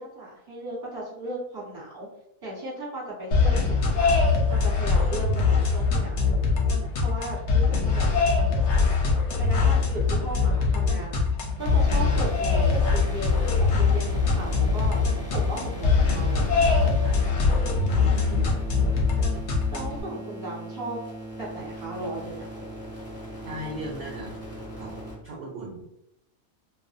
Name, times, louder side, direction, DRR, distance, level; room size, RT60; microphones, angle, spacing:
voice 1, 0.0-2.1 2.4-6.3 7.0-11.2 11.6-15.0 15.3-16.9 19.7-21.0 21.4-22.6, right 1 dB, 20° right, -7 dB, 0.9 m, -36 dB
sound 1, 3.3-20.0, left 4 dB, 65° left, 0.8 m, -22 dB
sound 2, 11.6-25.2, right 1 dB, 20° left, 0.5 m, -40 dB
voice 2, 18.0-18.5 23.5-24.3 24.8-24.9 25.2-25.9, right 1 dB, 65° right, -3 dB, 0.6 m, -37 dB
2.5 x 2.0 x 2.5 m, 0.82 s
omnidirectional pair, 1.5 m